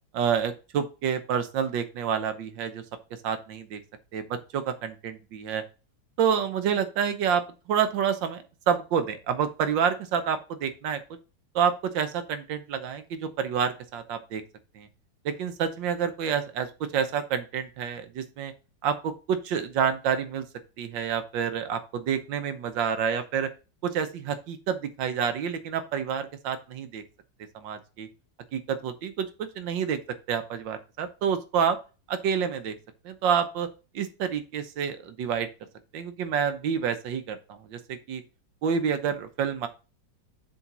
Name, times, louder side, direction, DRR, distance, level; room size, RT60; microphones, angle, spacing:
voice 1, 0.1-2.8 3.2-3.8 4.1-5.6 6.2-11.0 11.6-14.4 14.8-14.9 15.3-18.5 18.8-20.5 20.8-23.5 23.8-27.0 27.6-28.1 28.5-30.0 30.3-31.8 32.1-32.8 33.1-33.7 34.0-35.5 35.9-38.2 38.6-39.7, right 7 dB, 90° right, 10 dB, 1.6 m, -28 dB
7.0 x 3.6 x 5.9 m, 0.32 s
omnidirectional pair, 1.9 m